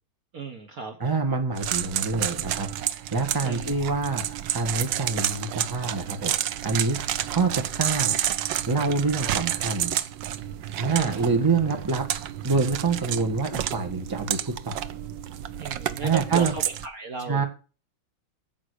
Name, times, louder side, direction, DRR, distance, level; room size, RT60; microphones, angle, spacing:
voice 1, 0.3-1.0 3.4-3.7 10.9-11.3 15.6-17.5, right 5 dB, 50° right, 6 dB, 1.4 m, -35 dB
voice 2, 1.0-7.0 7.3-8.1 8.7-9.9 10.8-12.1 12.4-14.4 14.6-14.8 16.0-16.5 17.3-17.5, right 4 dB, 10° right, 5 dB, 1.4 m, -26 dB
sound 1, 1.6-16.9, right 11 dB, 70° right, 1.3 m, -30 dB
10.0 x 7.6 x 4.9 m, 0.35 s
omnidirectional pair, 2.2 m